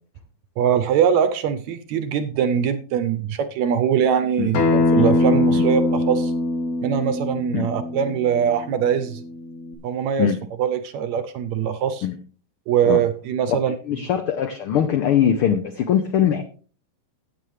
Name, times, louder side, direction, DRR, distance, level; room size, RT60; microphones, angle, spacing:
voice 1, 0.6-6.3 6.8-9.2 9.8-10.3 10.6-12.1 12.7-13.8, right 8 dB, 75° right, 11 dB, 1.8 m, -22 dB
Acoustic guitar, 4.5-9.7, left 2 dB, 55° left, 2.6 m, -23 dB
voice 2, 13.9-16.4, left 9 dB, 80° left, 8 dB, 1.2 m, -21 dB
14.5 x 9.1 x 3.2 m, 0.39 s
omnidirectional pair, 3.7 m